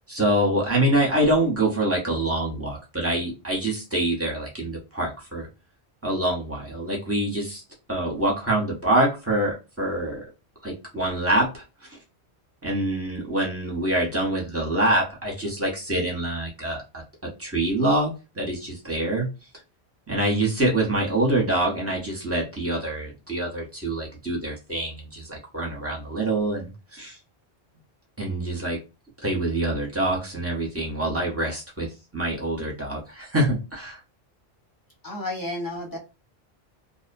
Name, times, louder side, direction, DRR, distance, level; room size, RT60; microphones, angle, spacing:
voice 1, 0.1-5.5 6.0-7.6 7.9-10.2 10.6-11.6 11.9-12.0 12.6-16.8 17.4-19.3 20.1-27.2 28.2-28.8 29.2-31.9 32.1-34.0, right 1 dB, 15° right, -2 dB, 0.7 m, -25 dB
voice 2, 35.0-36.0, left 1 dB, 20° left, -3 dB, 0.9 m, -31 dB
2.3 x 2.1 x 2.5 m, 0.29 s
omnidirectional pair, 1.1 m